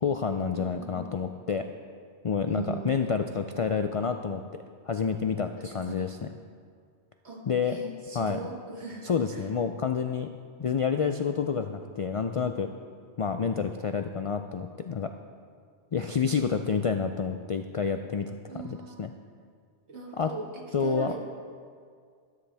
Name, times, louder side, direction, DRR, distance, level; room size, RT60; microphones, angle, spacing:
voice 1, 0.0-1.6 2.2-4.4 4.9-6.2 7.5-7.8 8.1-8.4 9.0-12.7 13.2-15.1 15.9-18.4 18.6-19.1 20.2-20.3 20.7-21.3, left 6 dB, 65° left, 7 dB, 0.3 m, -29 dB
voice 2, 0.6-1.0 2.5-3.0 5.6-6.0 7.2-9.4 18.5-19.0 19.9-21.3, right 4 dB, 85° right, -1 dB, 2.1 m, -40 dB
13.0 x 12.0 x 3.4 m, 2.1 s
omnidirectional pair, 1.1 m